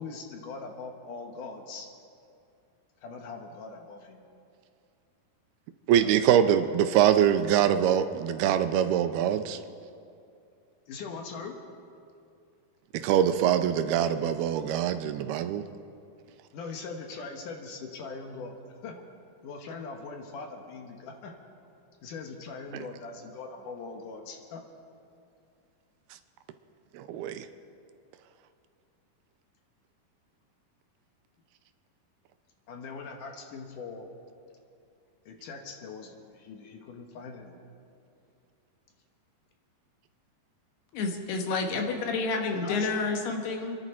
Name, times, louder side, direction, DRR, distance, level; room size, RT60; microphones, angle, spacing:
voice 1, 0.0-1.9 3.0-4.2 10.9-11.5 16.5-18.6 18.8-19.1 19.4-21.3 22.0-24.6 32.7-34.1 35.3-37.6 42.5-42.9, left 4 dB, 65° left, 3 dB, 2.5 m, -41 dB
voice 2, 5.9-9.6 12.9-15.7 22.7-22.9 26.1-26.2 26.9-27.5, right 9 dB, 85° right, 9 dB, 2.6 m, -24 dB
voice 3, 40.9-43.8, left 4 dB, 90° left, 3 dB, 3.5 m, -29 dB
28.0 x 11.0 x 4.5 m, 2.5 s
omnidirectional pair, 4.5 m